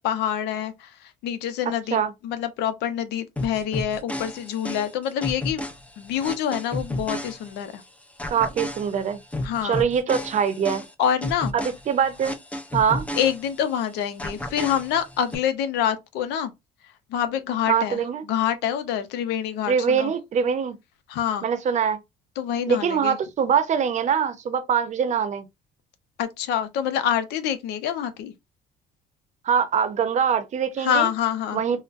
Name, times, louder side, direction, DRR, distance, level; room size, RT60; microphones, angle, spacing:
voice 1, 0.0-5.6 6.0-7.8 9.4-9.9 11.0-11.6 13.1-16.5 17.1-18.0 18.3-20.1 21.1-21.5 22.4-23.2 26.2-28.3 30.8-31.6, left 9 dB, 85° left, 0.6 m, -26 dB
sound 1, 3.4-7.8 8.2-13.8 14.2-15.4, left 1 dB, 10° left, 0.5 m, -32 dB
voice 2, 8.3-9.2 9.6-10.8 11.5-12.4 12.7-13.0 17.7-18.2 19.7-20.7 21.4-22.0 22.7-25.5 29.4-31.1 31.5-31.8, right 7 dB, 45° right, 0.6 m, -23 dB
3.7 x 2.1 x 2.5 m
cardioid pair, 110°, 17 cm